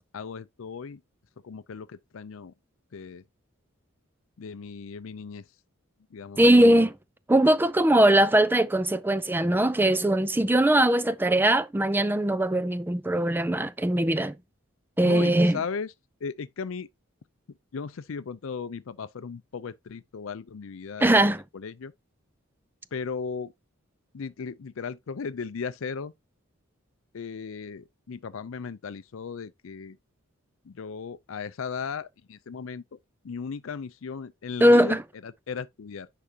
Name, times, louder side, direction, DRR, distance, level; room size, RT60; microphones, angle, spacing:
voice 1, 0.1-1.0 1.4-2.5 2.9-3.2 4.4-5.5 6.1-6.7 15.0-15.9 16.2-16.9 17.5-21.2 21.5-21.9 22.9-23.5 24.1-26.1 27.1-30.0 30.6-32.8 33.2-36.1, left 5 dB, 70° left, 0.5 m, -36 dB
voice 2, 6.4-6.9 7.3-14.3 15.0-15.6 21.0-21.4 34.6-35.0, right 1 dB, 10° right, 0.4 m, -20 dB
10.0 x 4.8 x 2.8 m
head